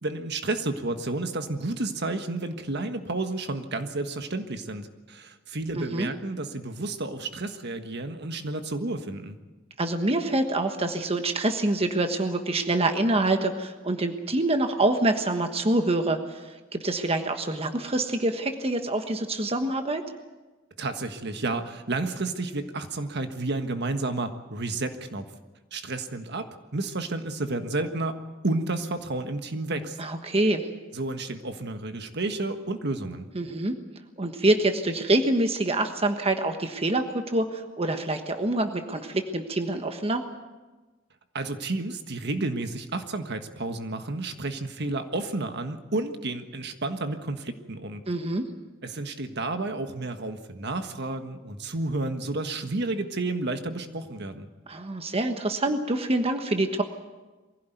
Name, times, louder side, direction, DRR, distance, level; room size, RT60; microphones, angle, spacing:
voice 1, 0.0-9.4 20.8-25.2 25.7-30.0 30.9-33.3 41.3-48.0 48.8-54.5, right 2 dB, 55° right, 7 dB, 1.5 m, -31 dB
voice 2, 5.7-6.1 9.8-16.4 16.7-20.0 30.0-30.6 33.3-33.8 34.2-40.2 48.1-48.5 54.7-56.8, right 2 dB, 30° right, 6 dB, 1.3 m, -26 dB
23.0 x 16.0 x 9.3 m, 1.2 s
head